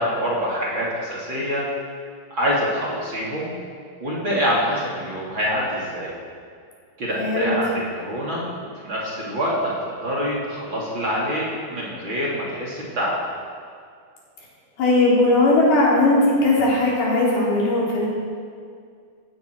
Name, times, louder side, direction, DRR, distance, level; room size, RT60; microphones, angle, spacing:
voice 1, 0.0-1.6 2.3-3.5 4.0-6.1 7.0-8.4 8.8-13.2, equal, 35° right, -5 dB, 3.3 m, -25 dB
voice 2, 7.2-7.5 14.8-18.1, left 2 dB, 75° left, -6 dB, 6.0 m, -18 dB
17.0 x 16.0 x 4.7 m, 2.2 s
omnidirectional pair, 4.4 m